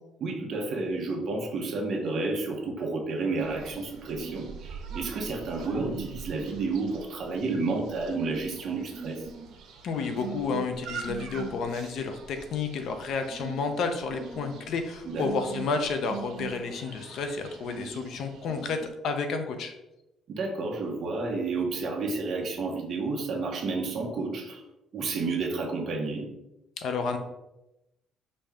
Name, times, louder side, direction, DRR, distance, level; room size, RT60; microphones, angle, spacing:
voice 1, 0.2-9.2 15.0-15.3 20.3-24.6 24.9-26.3, right 3 dB, 45° right, 0 dB, 0.8 m, -31 dB
sound 1, 3.4-18.9, right 6 dB, 80° right, 0.9 m, -42 dB
voice 2, 9.8-19.7 26.8-27.2, left 4 dB, 55° left, 6 dB, 0.6 m, -31 dB
5.3 x 2.7 x 3.5 m, 0.92 s
cardioid pair, 175°, 0 cm